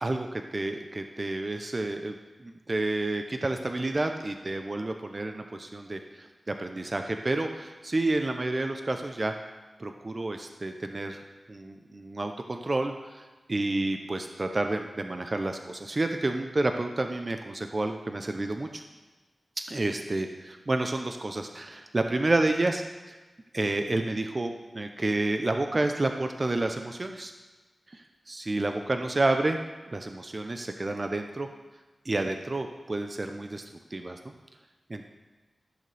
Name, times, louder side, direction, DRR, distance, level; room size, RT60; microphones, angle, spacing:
voice 1, 0.0-9.3 9.8-11.2 11.5-13.2 13.5-18.8 19.7-23.2 23.5-27.3 27.9-29.6 29.9-31.5 32.0-33.6 33.9-34.3 34.9-35.1, right 2 dB, 40° right, 5 dB, 0.7 m, -30 dB
14.5 x 6.6 x 3.4 m, 1.2 s
cardioid pair, 50°, 0 cm